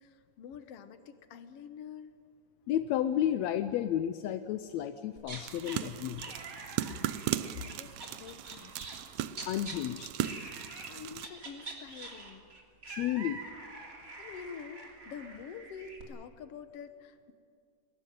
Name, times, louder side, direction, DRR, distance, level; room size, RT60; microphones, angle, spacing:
voice 1, 0.0-2.2 6.8-7.1 7.5-9.0 10.9-12.4 14.2-17.3, left 7 dB, 60° left, 10 dB, 1.9 m, -47 dB
voice 2, 2.7-6.3 9.5-10.1 12.9-13.4, left 11 dB, 75° left, 11 dB, 1.6 m, -32 dB
sound 1, 5.2-5.8 6.2-9.0 9.3-9.8 10.2-10.9 11.2-16.0, right 3 dB, 25° right, 3.3 m, -45 dB
sound 2, 5.4-11.3, right 12 dB, 75° right, 1.8 m, -37 dB
21.5 x 19.0 x 9.3 m, 2.4 s
omnidirectional pair, 3.8 m